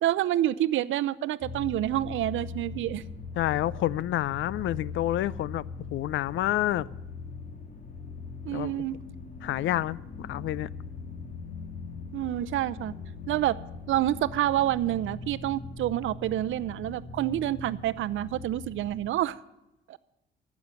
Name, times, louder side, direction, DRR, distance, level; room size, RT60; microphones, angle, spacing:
voice 1, 0.0-3.0 8.5-9.0 12.1-12.9 13.3-13.6 13.9-19.4 19.9-20.0, right 13 dB, 80° right, 0.6 m, -28 dB
sound 1, 1.4-19.1, left 4 dB, 40° left, 2.0 m, -41 dB
voice 2, 3.4-5.6 5.9-6.9 8.5-8.8 9.4-10.7, left 14 dB, 75° left, 0.5 m, -28 dB
14.5 x 7.3 x 7.8 m
cardioid pair, 90°, 20 cm